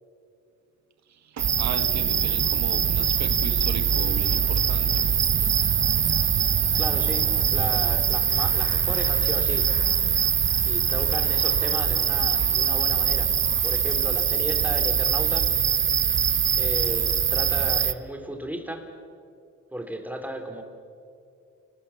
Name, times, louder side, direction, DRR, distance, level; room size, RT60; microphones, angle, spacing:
voice 1, 1.1-5.0 12.3-12.5, right 7 dB, 65° right, 9 dB, 1.6 m, -36 dB
sound 1, 1.4-17.9, right 8 dB, 40° right, 0.9 m, -23 dB
voice 2, 6.7-9.7 10.7-13.4 13.6-15.5 16.1-16.2 16.6-18.9 19.7-20.6, right 1 dB, 5° right, 5 dB, 3.3 m, -35 dB
29.0 x 20.0 x 7.1 m, 2.5 s
cardioid pair, 90°, 30 cm